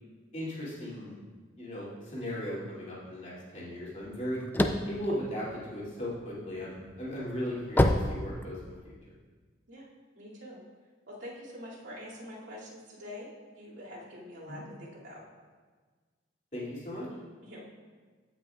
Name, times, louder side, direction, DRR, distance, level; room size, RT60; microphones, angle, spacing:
voice 1, 0.3-1.2 1.6-4.4 4.8-8.9 14.5-14.6 16.5-17.1, equal, 40° left, -7 dB, 2.6 m, -37 dB
sound 1, 4.0-6.2 6.7-8.9, left 1 dB, 10° left, 0.3 m, -27 dB
voice 2, 10.1-10.6 11.1-13.3 13.6-15.2 17.4-17.6, left 1 dB, 70° right, -8 dB, 2.5 m, -45 dB
16.0 x 5.8 x 2.4 m, 1.4 s
head